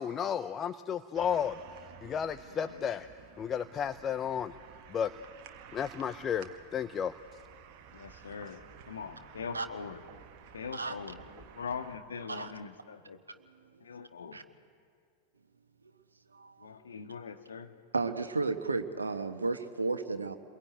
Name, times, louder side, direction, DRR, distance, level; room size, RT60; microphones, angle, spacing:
voice 1, 0.0-1.6 2.0-3.1 3.4-4.5 4.9-5.1 5.7-7.1, left 8 dB, 25° left, 12 dB, 0.7 m, -33 dB
sound 1, 1.1-12.0, right 8 dB, 45° right, 1.6 m, -53 dB
voice 2, 2.5-2.9 7.9-10.0 10.5-13.2 13.8-14.4 16.6-17.7, left 6 dB, 70° left, 5 dB, 1.9 m, -42 dB
voice 3, 16.3-16.7 17.9-20.4, right 3 dB, 75° right, 8 dB, 1.3 m, -33 dB
29.0 x 22.0 x 9.3 m, 2.1 s
figure-of-eight pair, 90°, 0 cm